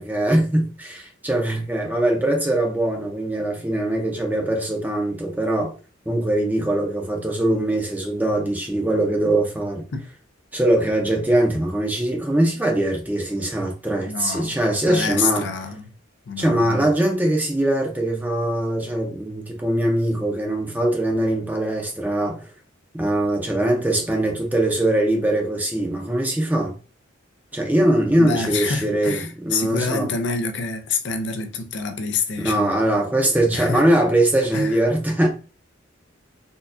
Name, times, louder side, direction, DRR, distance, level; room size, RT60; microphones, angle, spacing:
voice 1, 0.0-5.7 6.1-9.9 10.5-15.4 16.4-22.5 22.9-26.7 27.5-30.1 32.4-35.3, right 1 dB, 10° right, 0.6 m, -22 dB
voice 2, 14.1-15.9 16.3-16.9 28.2-32.7 33.5-33.8 34.5-34.8, left 5 dB, 60° left, 0.5 m, -27 dB
4.2 x 2.3 x 2.6 m
head